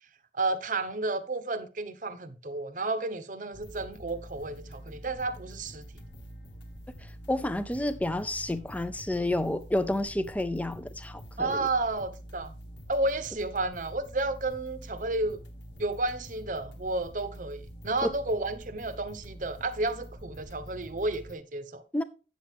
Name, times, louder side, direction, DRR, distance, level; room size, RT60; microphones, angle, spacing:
voice 1, 0.4-5.8 11.4-12.6 12.9-15.4 15.8-21.8, right 2 dB, 45° right, 0.8 m, -31 dB
sound 1, 3.5-21.4, equal, 90° left, 1.6 m, -46 dB
voice 2, 7.3-11.7 18.0-18.1 21.9-22.0, left 1 dB, 10° left, 0.5 m, -30 dB
8.6 x 7.4 x 3.5 m
head